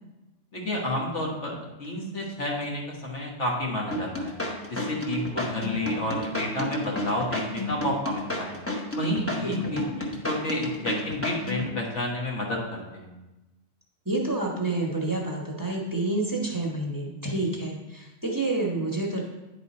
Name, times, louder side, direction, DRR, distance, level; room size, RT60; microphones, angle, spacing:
voice 1, 0.5-4.4 4.7-8.6 9.0-13.1, left 1 dB, 85° left, -2 dB, 1.7 m, -30 dB
sound 1, 3.9-11.7, left 1 dB, 15° left, 0.9 m, -31 dB
voice 2, 9.4-9.9 14.0-19.2, right 2 dB, 20° right, -3 dB, 0.9 m, -29 dB
9.7 x 3.8 x 4.2 m, 1.0 s
omnidirectional pair, 1.2 m